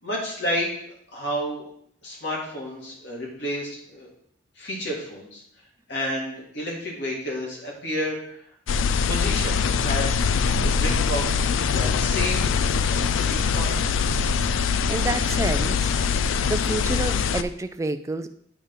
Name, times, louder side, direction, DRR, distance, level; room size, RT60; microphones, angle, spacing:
voice 1, 0.0-1.7 2.0-4.1 4.6-5.4 5.9-8.4 8.7-10.1 10.6-11.3 11.7-12.6 12.9-13.8, equal, 55° left, -3 dB, 2.2 m, -31 dB
sound 1, 8.7-17.4, left 6 dB, 75° left, 0.4 m, -23 dB
voice 2, 14.9-15.9 16.5-18.3, right 2 dB, 15° right, 8 dB, 0.3 m, -28 dB
8.5 x 3.5 x 5.6 m, 0.67 s
head